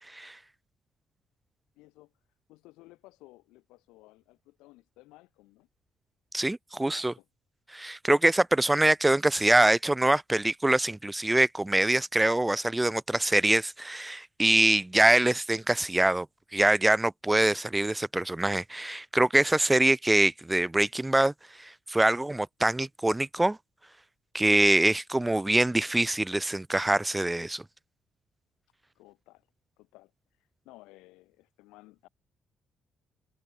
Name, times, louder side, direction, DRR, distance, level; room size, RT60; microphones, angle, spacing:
voice 1, 1.7-2.1 2.5-5.7 6.8-7.3 29.0-29.5 29.8-30.1 30.7-32.1, left 20 dB, 85° left, 6.8 m, -55 dB
voice 2, 6.3-7.1 7.7-16.3 16.5-23.6 24.3-27.6, right 1 dB, 15° right, 0.6 m, -24 dB
supercardioid pair, 55°, 0 cm